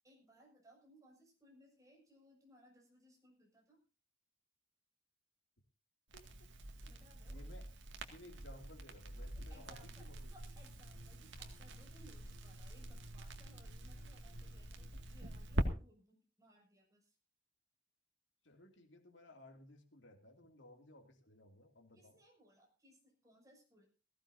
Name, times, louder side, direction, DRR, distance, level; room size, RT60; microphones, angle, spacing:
voice 1, 0.0-3.8 6.8-7.6 9.5-17.1 21.9-23.9, equal, 20° right, -1 dB, 6.3 m, -65 dB
Crackle, 6.1-15.7, right 1 dB, 70° right, 2.1 m, -45 dB
voice 2, 7.3-7.7 8.1-10.3 18.4-22.2, left 1 dB, 70° left, 4 dB, 2.6 m, -59 dB
20.0 x 15.5 x 2.7 m, 0.33 s
head